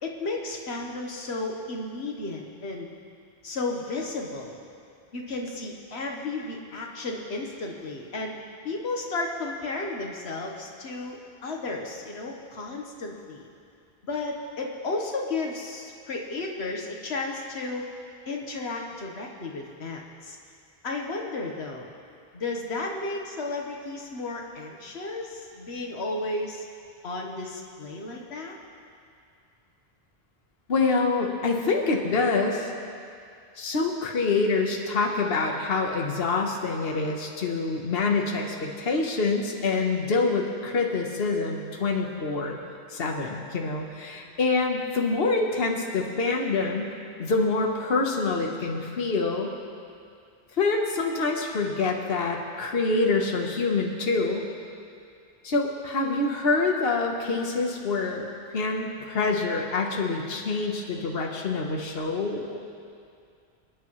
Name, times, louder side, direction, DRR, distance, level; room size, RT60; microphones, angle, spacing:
voice 1, 0.0-2.9 3.4-4.6 5.1-13.5 14.0-17.8 18.3-20.4 20.8-21.9 22.3-26.6 27.0-28.6, left 3 dB, 85° left, 0 dB, 1.5 m, -33 dB
voice 2, 30.7-32.7 33.6-42.6 42.9-46.9 47.2-49.5 50.6-54.5 55.4-62.6, left 3 dB, 65° left, 1 dB, 1.4 m, -26 dB
27.0 x 10.0 x 3.2 m, 2.4 s
omnidirectional pair, 1.1 m